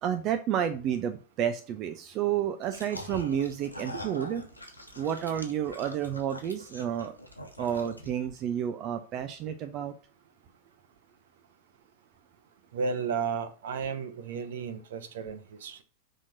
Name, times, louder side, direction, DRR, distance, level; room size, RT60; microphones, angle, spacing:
voice 1, 0.0-4.4 5.0-7.2 7.6-9.9, right 9 dB, 35° right, 0.7 m, -30 dB
sound 1, 2.6-8.4, left 1 dB, 85° left, 1.3 m, -44 dB
voice 2, 12.7-15.8, right 5 dB, 60° right, 1.0 m, -33 dB
6.1 x 4.4 x 6.4 m
figure-of-eight pair, 90°, 0 cm